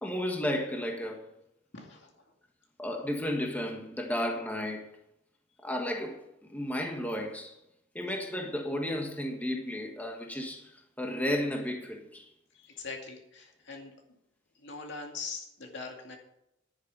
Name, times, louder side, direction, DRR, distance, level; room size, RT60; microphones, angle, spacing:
voice 1, 0.0-1.2 2.8-4.9 5.6-7.5 7.9-12.3, left 1 dB, 10° left, 1.4 m, -33 dB
voice 2, 1.7-2.1 12.5-13.9 14.6-16.2, left 4 dB, 65° left, 2.4 m, -42 dB
10.5 x 9.5 x 5.4 m
head